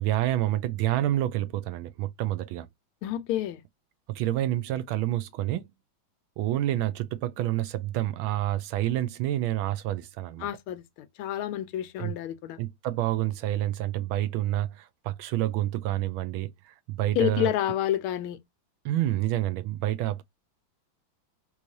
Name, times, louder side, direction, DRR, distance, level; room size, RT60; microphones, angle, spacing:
voice 1, 0.0-2.7 4.1-5.7 6.4-10.5 12.0-12.1 12.6-17.5 18.8-20.2, right 14 dB, 80° right, 1.3 m, -28 dB
voice 2, 3.0-3.6 10.4-12.6 17.1-18.4, left 12 dB, 90° left, 1.5 m, -29 dB
3.4 x 3.1 x 2.6 m
omnidirectional pair, 2.3 m